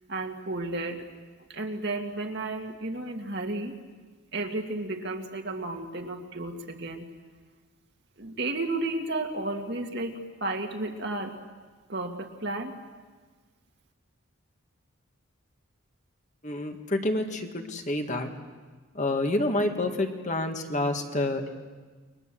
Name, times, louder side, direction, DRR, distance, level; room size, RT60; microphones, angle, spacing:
voice 1, 0.1-1.0 1.5-3.7 4.3-7.1 8.2-11.4 11.9-12.7, right 2 dB, 50° right, 3 dB, 2.1 m, -33 dB
voice 2, 16.4-18.3 18.9-21.5, left 1 dB, 35° left, 4 dB, 2.0 m, -28 dB
29.0 x 22.5 x 7.8 m, 1.4 s
head